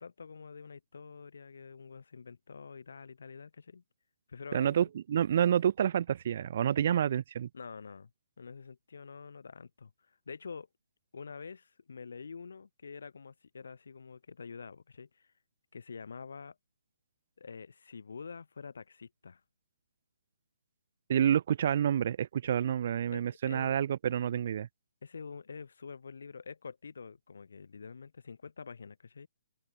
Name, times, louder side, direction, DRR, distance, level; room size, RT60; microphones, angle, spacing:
voice 1, 0.0-3.8 4.3-4.7 7.5-8.1 8.4-10.7 11.1-15.3 15.7-16.6 17.4-19.4 23.1-23.8 25.0-29.3, left 5 dB, 75° left, 2.5 m, -47 dB
voice 2, 4.5-7.5 21.1-24.7, right 9 dB, 45° right, 0.4 m, -28 dB
open air
hypercardioid pair, 165°, 0 cm